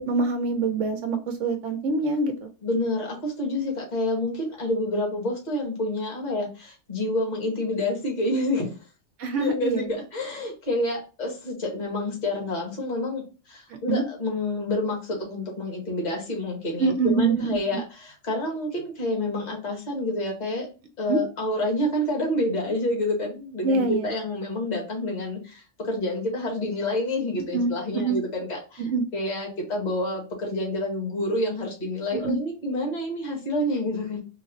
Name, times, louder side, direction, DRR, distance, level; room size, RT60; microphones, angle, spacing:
voice 1, 0.0-2.5 9.2-10.0 13.7-14.0 16.8-17.8 21.1-21.2 23.6-24.1 27.5-28.2 28.8-29.0 32.1-32.4, right 3 dB, 85° right, 5 dB, 0.9 m, -25 dB
voice 2, 2.6-8.9 9.4-20.7 21.0-34.2, left 1 dB, 40° left, 0 dB, 1.2 m, -28 dB
3.4 x 2.0 x 3.7 m, 0.33 s
omnidirectional pair, 1.2 m